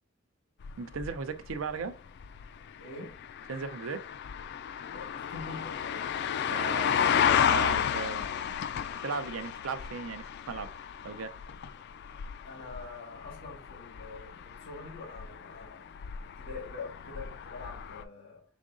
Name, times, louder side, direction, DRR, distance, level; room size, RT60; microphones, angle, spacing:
sound 1, 0.6-18.0, left 8 dB, 55° left, 0.3 m, -33 dB
voice 1, 0.8-2.0 3.5-4.1 6.5-8.6 9.0-10.7 11.0-11.4, right 5 dB, 85° right, 0.5 m, -37 dB
voice 2, 2.8-3.2 4.9-7.1 12.4-18.4, left 3 dB, 85° left, 1.3 m, -45 dB
5.1 x 3.6 x 2.5 m
head